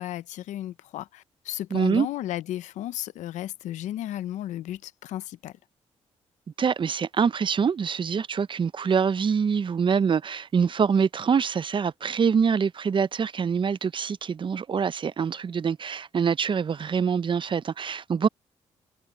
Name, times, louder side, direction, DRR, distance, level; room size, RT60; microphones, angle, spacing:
voice 1, 0.0-5.5, left 13 dB, 85° left, 0.7 m, -34 dB
voice 2, 1.7-2.1 6.6-18.3, right 6 dB, 40° right, 0.6 m, -25 dB
cardioid pair, 70°, 12 cm